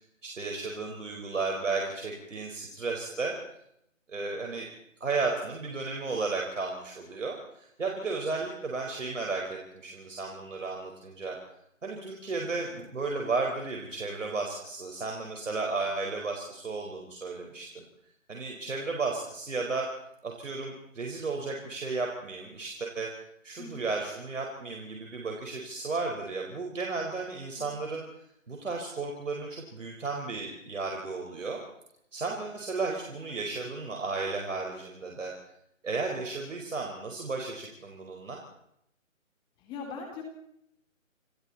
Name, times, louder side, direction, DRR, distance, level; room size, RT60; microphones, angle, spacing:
voice 1, 0.2-3.3 4.1-4.7 5.0-11.4 11.8-17.8 18.3-19.9 20.2-23.1 23.4-28.0 28.5-31.6 32.1-35.3 35.8-38.4, right 3 dB, 65° right, 1 dB, 5.1 m, -34 dB
voice 2, 23.6-23.9 27.6-27.9 39.6-40.2, left 5 dB, 10° left, 2 dB, 3.0 m, -41 dB
29.5 x 22.0 x 4.3 m, 0.76 s
figure-of-eight pair, 155°, 40 cm